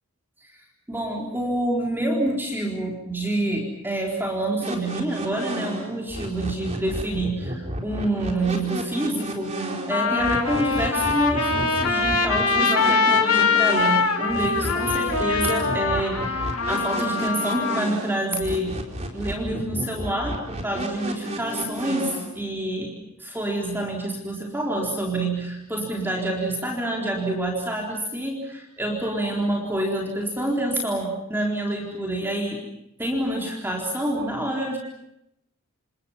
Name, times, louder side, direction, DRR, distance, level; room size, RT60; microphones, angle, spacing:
voice 1, 0.9-18.8 19.1-32.6 33.0-34.8, right 1 dB, 10° right, -1 dB, 4.1 m, -27 dB
sound 1, 4.6-22.3, right 1 dB, 30° right, 4.3 m, -32 dB
Trumpet, 9.2-9.3 9.9-17.8, left 4 dB, 65° left, 3.4 m, -23 dB
29.5 x 28.0 x 5.7 m, 0.80 s
head